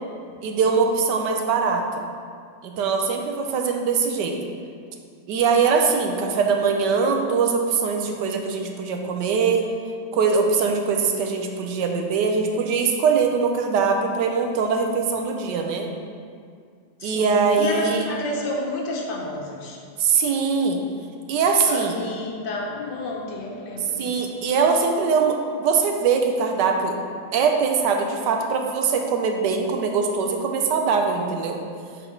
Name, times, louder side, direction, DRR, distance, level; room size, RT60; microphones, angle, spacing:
voice 1, 0.4-1.8 2.6-4.4 5.3-9.7 10.1-15.9 17.0-18.0 20.0-20.8 21.3-22.0 24.0-27.0 27.3-31.6, right 5 dB, 85° right, 3 dB, 1.3 m, -22 dB
voice 2, 17.0-19.8 21.7-24.2, left 1 dB, 85° left, 0 dB, 1.6 m, -30 dB
8.1 x 3.9 x 4.4 m, 2.2 s
omnidirectional pair, 1.8 m